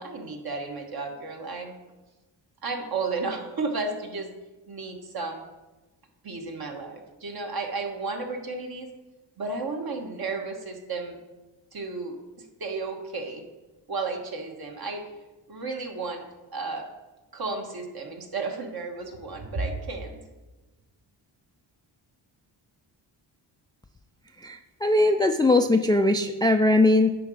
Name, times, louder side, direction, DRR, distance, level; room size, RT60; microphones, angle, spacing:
voice 1, 0.0-1.7 2.6-4.3 4.7-5.4 6.2-8.9 9.4-11.2 11.7-13.4 13.9-15.1 15.5-16.2 16.5-16.8 17.3-20.2, right 3 dB, 50° right, 2 dB, 1.4 m, -33 dB
voice 2, 24.4-27.1, left 2 dB, 10° left, 6 dB, 0.3 m, -20 dB
9.9 x 3.9 x 5.0 m, 1.2 s
cardioid pair, 80°, 45 cm